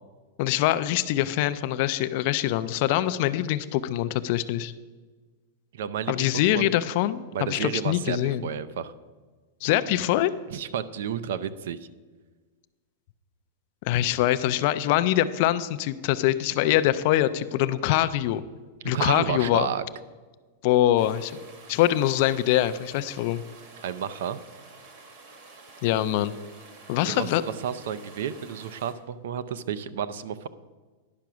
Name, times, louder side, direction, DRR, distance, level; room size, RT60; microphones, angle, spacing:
voice 1, 0.4-4.7 6.1-8.5 9.6-10.3 13.8-18.4 18.8-19.7 20.6-21.3 21.7-23.4 25.8-26.3 26.9-27.4, left 13 dB, 35° left, 13 dB, 0.3 m, -24 dB
voice 2, 5.7-6.3 6.5-6.7 7.3-8.9 10.5-11.8 18.8-19.8 23.8-24.4 27.0-27.3 27.6-30.5, right 8 dB, 60° right, 15 dB, 0.5 m, -31 dB
sound 1, 21.0-28.9, right 3 dB, 35° right, 1.2 m, -49 dB
10.5 x 5.7 x 6.1 m, 1.4 s
supercardioid pair, 180°, 0 cm